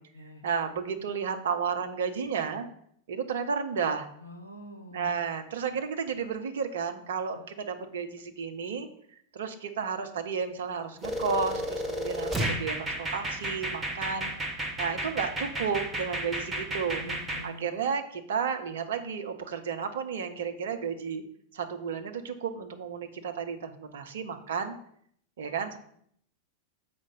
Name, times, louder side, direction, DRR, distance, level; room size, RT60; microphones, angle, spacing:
voice 1, 0.4-2.7 3.1-4.1 4.9-8.9 9.3-17.0 17.4-21.2 21.5-24.8 25.4-25.8, right 6 dB, 60° right, 6 dB, 0.9 m, -32 dB
voice 2, 4.2-5.1 17.0-17.7, equal, 80° left, 4 dB, 0.7 m, -45 dB
sound 1, 11.0-17.4, right 1 dB, 15° right, 1.4 m, -32 dB
6.8 x 5.1 x 5.4 m, 0.67 s
figure-of-eight pair, 90°, 0 cm